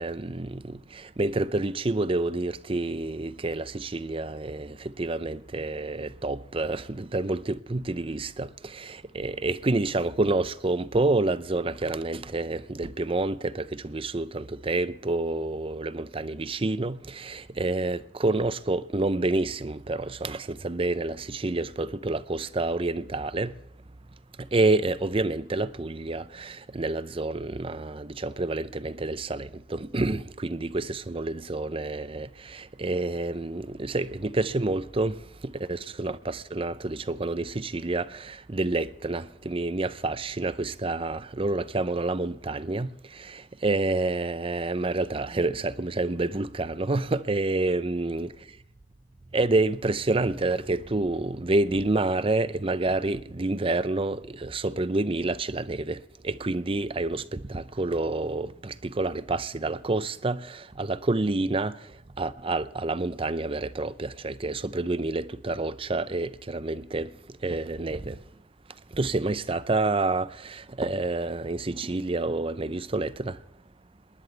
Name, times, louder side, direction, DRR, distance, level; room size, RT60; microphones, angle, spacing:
voice 1, 0.0-23.5 24.4-35.2 35.4-48.3 49.3-61.9 62.2-67.1 67.4-68.2 68.9-73.4, right 2 dB, 30° right, 0.6 m, -28 dB
20.5 x 19.5 x 3.4 m
head